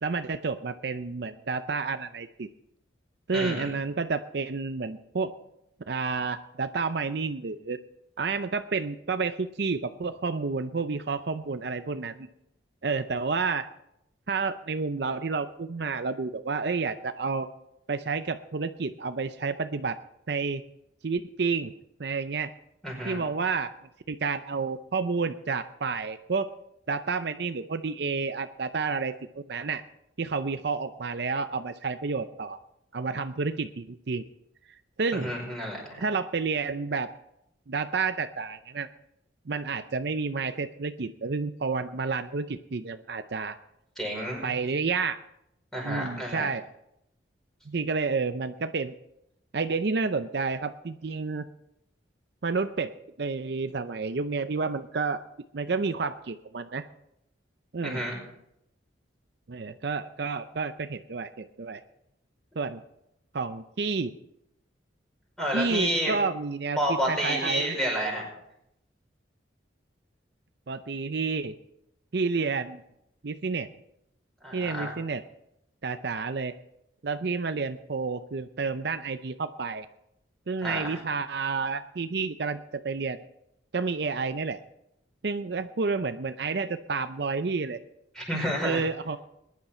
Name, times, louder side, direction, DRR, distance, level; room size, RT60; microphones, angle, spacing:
voice 1, 0.0-2.5 3.3-5.3 5.9-7.8 8.2-12.3 12.8-13.7 14.3-17.5 17.9-20.0 20.3-20.6 21.0-21.7 22.0-22.5 23.0-23.7 24.1-26.5 26.9-29.8 30.2-32.6 32.9-34.2 35.0-35.3 36.0-37.1 37.7-38.9 39.5-43.6 44.4-45.2 45.8-46.6 47.7-48.9 49.5-51.5 52.4-55.2 55.5-56.9 57.7-58.0 59.5-61.8 62.6-62.8 63.3-64.1 65.5-67.7 70.7-71.6 72.1-72.8 73.2-73.7 74.5-75.2 75.8-76.5 77.0-79.9 80.5-83.2 83.7-84.6 85.2-87.8 88.6-89.2, right 4 dB, 60° right, 9 dB, 0.6 m, -30 dB
voice 2, 3.3-3.7 22.8-23.2 35.1-36.0 44.0-44.5 45.7-46.4 57.8-58.2 65.4-66.1 66.8-68.3 74.4-74.9 80.6-81.0 88.1-88.8, equal, 5° left, -2 dB, 5.2 m, -30 dB
21.0 x 10.5 x 4.4 m, 0.81 s
head